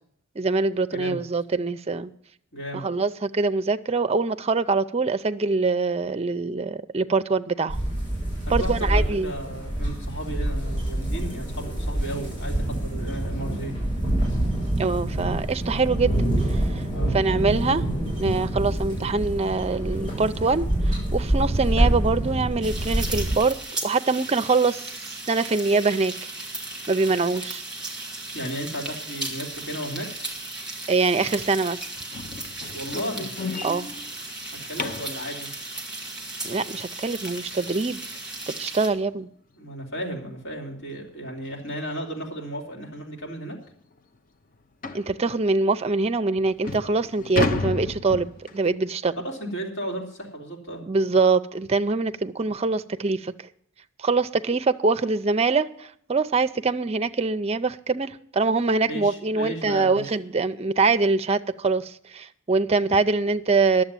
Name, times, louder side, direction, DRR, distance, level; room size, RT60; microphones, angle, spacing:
voice 1, 0.4-2.1 2.7-7.8 8.5-9.3 14.8-16.2 16.5-16.6 17.1-17.8 18.2-23.6 23.8-24.9 25.3-26.1 26.9-27.6 30.9-31.8 33.6-33.9 36.4-38.0 38.6-39.3 44.9-49.1 50.9-53.3 54.0-63.8, right 3 dB, 30° right, 0.5 m, -24 dB
voice 2, 0.9-1.2 2.5-2.8 8.5-13.7 16.9-17.1 28.3-30.1 32.7-33.3 34.6-35.5 39.5-43.6 49.2-50.8 58.8-60.0, right 1 dB, 70° left, 3.3 m, -34 dB
sound 1, 7.7-23.4, right 1 dB, 25° left, 6.4 m, -26 dB
sound 2, 22.6-38.9, right 2 dB, 5° right, 2.4 m, -36 dB
sound 3, 32.1-35.2 38.0-38.1 38.6-38.8 39.1-39.2 39.7-39.8 40.9-41.1 41.5-41.6 42.3-42.4 42.7-42.8 43.3-43.4 44.8-45.1 45.9-46.0 46.4-48.7, left 3 dB, 40° left, 0.8 m, -31 dB
11.0 x 7.5 x 8.9 m
head